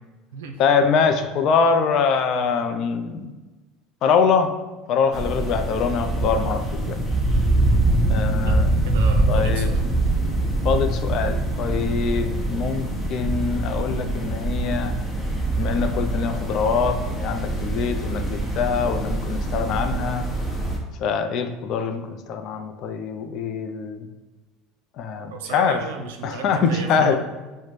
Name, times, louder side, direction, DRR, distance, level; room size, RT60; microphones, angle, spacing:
voice 1, 0.6-3.3 4.0-4.5 4.9-7.0 8.1-8.8 9.3-9.7 10.6-15.0 15.6-20.3 21.0-24.1 25.0-25.8 26.2-27.2, left 5 dB, 55° left, 7 dB, 0.4 m, -23 dB
sound 1, 5.1-20.8, right 2 dB, 10° left, 1.0 m, -24 dB
voice 2, 8.9-9.8 25.3-27.2, right 4 dB, 75° right, 5 dB, 0.4 m, -34 dB
4.9 x 2.1 x 3.1 m, 1.2 s
hypercardioid pair, 70°, 0 cm